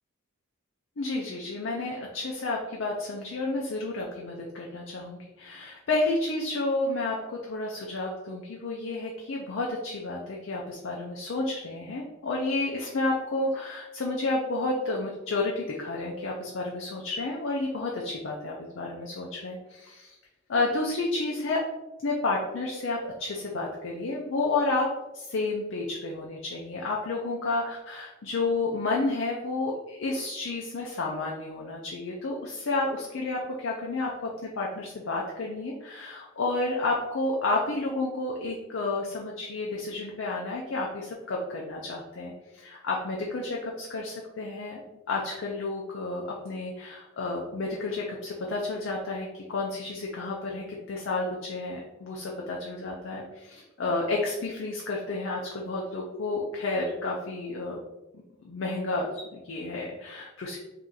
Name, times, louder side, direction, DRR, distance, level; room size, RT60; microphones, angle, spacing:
voice 1, 1.0-20.2 20.5-21.6 22.0-24.9 25.1-44.8 45.1-57.8 58.4-60.6, left 2 dB, 85° left, -1 dB, 0.5 m, -31 dB
2.8 x 2.5 x 3.7 m, 1.1 s
head